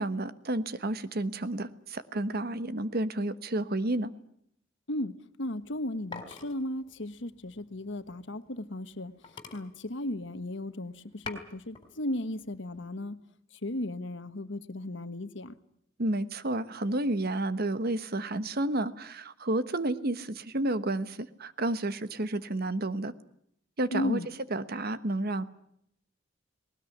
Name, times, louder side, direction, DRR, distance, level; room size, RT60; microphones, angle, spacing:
voice 1, 0.0-4.1 16.0-23.1 23.8-24.2 24.5-25.4, right 2 dB, 50° right, 13 dB, 1.2 m, -31 dB
voice 2, 4.9-9.1 9.5-13.2 13.6-15.5 23.9-24.3, left 1 dB, 65° left, 11 dB, 1.4 m, -35 dB
sound 1, 5.5-8.6 8.9-9.0 9.2-10.6 11.0-11.9 12.3-12.8, left 4 dB, 25° left, 3.8 m, -46 dB
20.0 x 19.5 x 9.9 m, 0.71 s
head